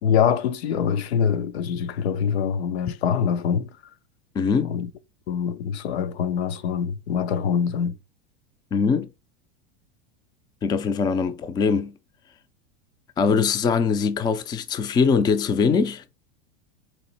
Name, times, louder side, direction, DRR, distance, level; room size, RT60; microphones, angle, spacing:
voice 1, 0.0-3.7 4.6-4.9 5.3-8.0, left 7 dB, 90° left, 0.7 m, -24 dB
voice 2, 4.3-4.8 8.7-9.1 10.6-11.9 13.2-16.0, left 5 dB, 15° left, 0.3 m, -22 dB
4.3 x 2.9 x 4.2 m
supercardioid pair, 125°, 31 cm